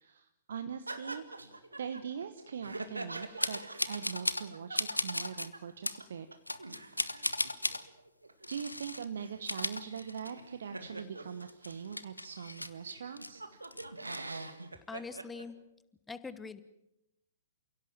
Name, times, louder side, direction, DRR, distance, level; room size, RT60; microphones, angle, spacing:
voice 1, 0.0-1.5 1.8-6.3 8.5-13.4, right 7 dB, 55° right, 9 dB, 1.2 m, -42 dB
sound 1, 0.9-5.7 6.0-6.1 6.3-11.9 12.5-12.6 12.9-15.5, right 2 dB, 80° right, 2.0 m, -45 dB
sound 2, 3.4-4.5 4.7-5.5 5.8-6.0 6.5-7.8 8.4-9.0 9.3-10.5 10.9-11.0 11.4-13.3 13.6-14.2, left 1 dB, 85° left, 1.2 m, -35 dB
voice 2, 14.9-15.6 16.1-16.6, left 4 dB, 10° left, 14 dB, 1.2 m, -43 dB
29.5 x 17.0 x 7.4 m, 0.85 s
figure-of-eight pair, 115°, 0 cm